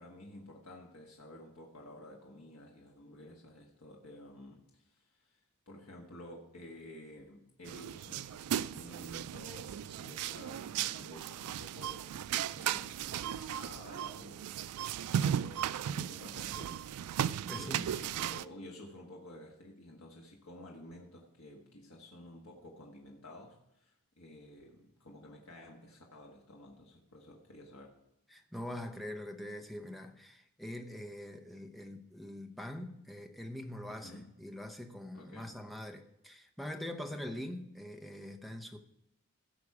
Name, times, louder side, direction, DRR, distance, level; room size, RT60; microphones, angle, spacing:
voice 1, 0.0-5.3 5.7-12.1 12.5-17.2 17.5-28.0 33.9-34.3 35.1-35.6 37.1-37.4, left 1 dB, 70° left, -1 dB, 1.5 m, -52 dB
sound 1, 7.7-18.5, right 10 dB, 90° right, 0.3 m, -36 dB
voice 2, 17.5-18.0 28.3-38.8, left 1 dB, ahead, 3 dB, 0.8 m, -43 dB
16.5 x 6.1 x 4.8 m, 0.80 s
head